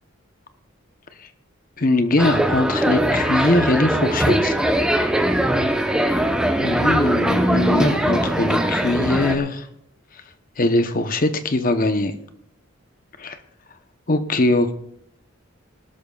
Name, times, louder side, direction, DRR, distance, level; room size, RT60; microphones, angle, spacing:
voice 1, 1.8-4.6 6.6-9.7 10.6-12.1 13.2-13.4 14.1-14.7, left 2 dB, 40° left, 9 dB, 0.9 m, -21 dB
sound 1, 2.2-9.4, right 1 dB, 5° right, 0.9 m, -20 dB
19.0 x 12.0 x 2.4 m, 0.75 s
head